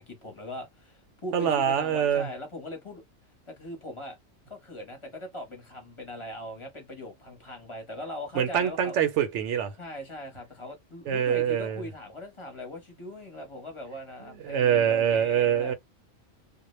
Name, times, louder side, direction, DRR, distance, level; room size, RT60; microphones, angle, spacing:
voice 1, 0.0-3.0 3.5-4.2 4.5-9.0 9.8-15.7, left 1 dB, 25° left, 0.8 m, -40 dB
voice 2, 1.3-2.3 8.3-9.7 11.1-11.8 14.2-15.7, right 9 dB, 70° right, 0.9 m, -25 dB
2.2 x 2.1 x 3.0 m
omnidirectional pair, 1.4 m